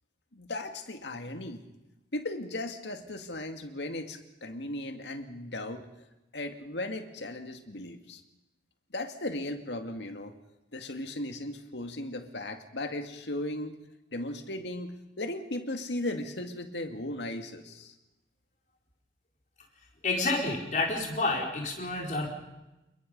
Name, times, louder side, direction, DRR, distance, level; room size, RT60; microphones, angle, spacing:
voice 1, 0.3-1.6 2.1-5.9 6.3-8.2 8.9-10.3 10.7-13.8 14.1-17.9, left 1 dB, 80° left, 6 dB, 2.1 m, -36 dB
voice 2, 20.0-22.3, left 3 dB, 45° left, 0 dB, 4.9 m, -29 dB
28.5 x 22.0 x 5.4 m, 0.98 s
head